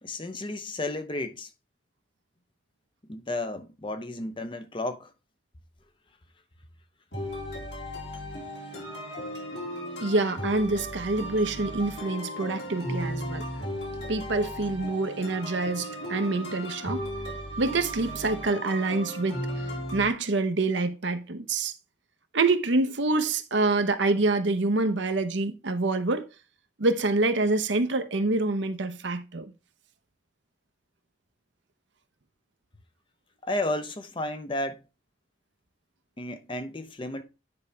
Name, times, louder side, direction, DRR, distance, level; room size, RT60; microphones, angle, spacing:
voice 1, 0.0-1.5 3.1-5.1 33.4-34.8 36.2-37.2, left 1 dB, 25° left, 0.7 m, -32 dB
sound 1, 7.1-20.1, equal, 65° left, 2.7 m, -36 dB
voice 2, 10.0-13.4 14.1-17.1 17.6-19.4 19.9-21.7 22.3-26.3 26.8-29.5, right 3 dB, 75° right, 0.9 m, -26 dB
9.7 x 5.0 x 3.3 m
head